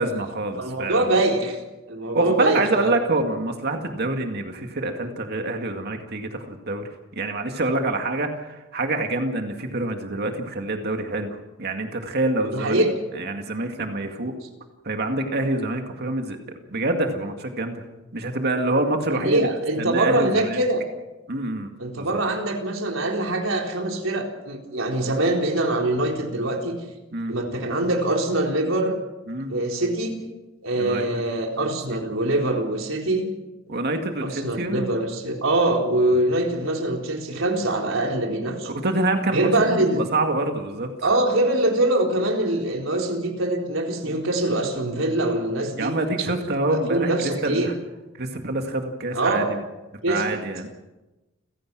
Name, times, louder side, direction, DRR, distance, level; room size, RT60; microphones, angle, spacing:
voice 1, 0.0-1.0 2.1-6.8 7.1-12.8 13.2-14.3 14.8-16.4 16.7-17.8 18.1-19.5 19.8-20.6 21.3-22.2 27.1-27.3 29.3-29.5 30.7-31.2 33.7-35.0 38.5-40.9 44.0-44.2 45.8-47.7 48.2-49.6 50.1-50.7, right 2 dB, 55° right, 5 dB, 2.2 m, -26 dB
voice 2, 0.6-1.6 1.9-2.9 12.5-12.9 19.1-20.8 21.8-26.8 27.3-29.0 29.5-30.2 30.6-33.3 34.2-38.7 39.3-40.0 41.0-45.9 46.7-47.7 49.1-49.5 50.0-50.2, right 1 dB, 80° right, 1 dB, 4.1 m, -23 dB
29.5 x 16.5 x 6.2 m, 1.0 s
head